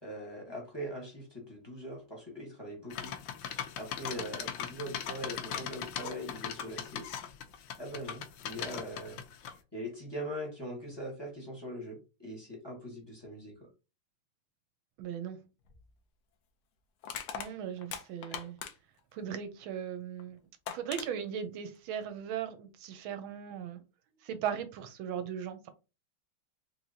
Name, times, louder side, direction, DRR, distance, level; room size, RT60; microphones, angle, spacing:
voice 1, 0.0-3.1 3.8-7.1 7.8-9.2 9.7-13.7 18.3-18.4, equal, 15° left, 0.9 m, -41 dB
sound 1, 2.9-9.5, left 9 dB, 70° left, 1.1 m, -39 dB
voice 2, 15.0-15.4 17.3-18.6 19.1-20.4 20.7-23.8 24.2-25.7, right 8 dB, 75° right, 1.3 m, -38 dB
Crushing, 15.7-15.8 17.0-19.0 20.2-20.3 20.7-21.1, left 8 dB, 90° left, 0.8 m, -40 dB
3.8 x 3.1 x 2.7 m
omnidirectional pair, 2.4 m